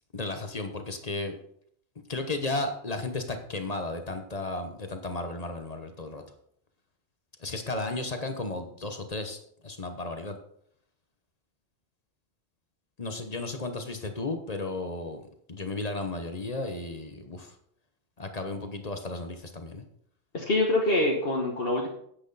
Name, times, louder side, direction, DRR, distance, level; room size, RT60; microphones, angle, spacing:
voice 1, 0.1-1.3 2.1-6.2 7.4-10.4 13.0-15.2 15.5-17.5 18.2-19.8, left 2 dB, 40° left, 6 dB, 1.1 m, -34 dB
voice 2, 20.3-21.9, left 2 dB, 60° left, -2 dB, 1.6 m, -25 dB
10.0 x 8.1 x 4.1 m, 0.67 s
omnidirectional pair, 1.1 m